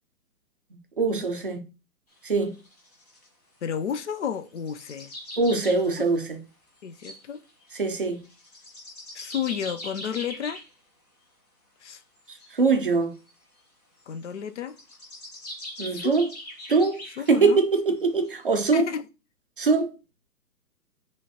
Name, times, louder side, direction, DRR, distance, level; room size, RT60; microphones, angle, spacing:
voice 1, 1.0-1.7 2.2-2.6 5.4-6.4 7.7-8.2 12.5-13.2 15.8-16.3 16.7-17.0 17.3-18.9 19.6-19.9, right 4 dB, 35° right, 0.4 m, -22 dB
sound 1, 2.1-3.3 3.8-3.9 4.6-6.2 6.8-10.7 12.2-13.3 14.0-14.2 14.7-17.4 18.0-18.1 18.2-18.4, left 1 dB, 25° left, 0.8 m, -41 dB
voice 2, 3.6-5.1 6.8-7.4 9.1-10.6 11.8-12.0 14.1-14.7 15.9-16.2 17.2-17.6 18.7-19.1, left 8 dB, 50° left, 0.4 m, -31 dB
5.4 x 3.2 x 2.7 m
hypercardioid pair, 165°, 47 cm